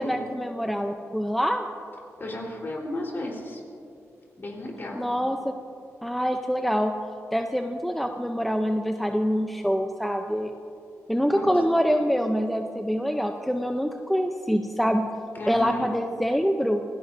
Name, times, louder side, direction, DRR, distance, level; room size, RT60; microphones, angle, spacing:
voice 1, 0.0-1.7 5.0-5.5 6.0-6.9 7.3-10.5 11.1-15.1 15.5-16.8, equal, ahead, 4 dB, 0.6 m, -25 dB
voice 2, 2.2-3.6 4.4-5.1 11.3-11.6 15.3-15.9, left 1 dB, 40° left, -2 dB, 4.0 m, -34 dB
27.0 x 17.0 x 2.7 m, 2.5 s
wide cardioid pair, 115°, 5 cm